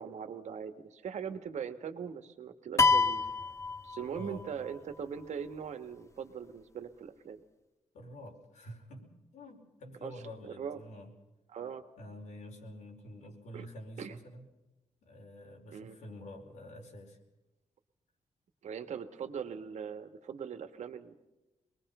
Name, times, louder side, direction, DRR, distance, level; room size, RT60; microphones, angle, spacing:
voice 1, 0.0-3.2 3.8-7.4 10.0-10.1 10.4-10.8 11.5-11.9 13.5-13.7 14.0-14.2 15.7-16.0 18.6-21.2, right 7 dB, 75° right, 8 dB, 1.8 m, -40 dB
sound 1, 2.8-4.5, left 4 dB, 25° left, 0.7 m, -27 dB
voice 2, 4.1-4.5 7.9-11.1 12.0-14.5 15.0-17.2, equal, 90° left, 1 dB, 4.9 m, -48 dB
25.0 x 21.0 x 5.6 m, 1.0 s
wide cardioid pair, 140°, 12 cm